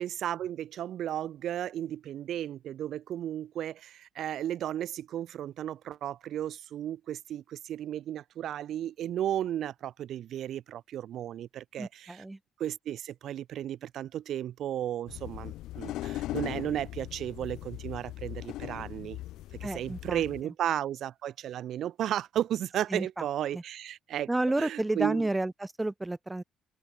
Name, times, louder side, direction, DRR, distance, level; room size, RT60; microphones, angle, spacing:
voice 1, 0.0-12.2 12.6-19.2 19.6-24.3 24.6-25.2, right 11 dB, 65° right, 1.9 m, -34 dB
voice 2, 11.8-12.4 19.6-20.5 22.9-23.3 23.5-23.6 24.3-26.4, right 2 dB, 15° right, 7.4 m, -31 dB
sound 1, 15.1-20.4, left 15 dB, 75° left, 3.8 m, -39 dB
open air
supercardioid pair, 65°, 0 cm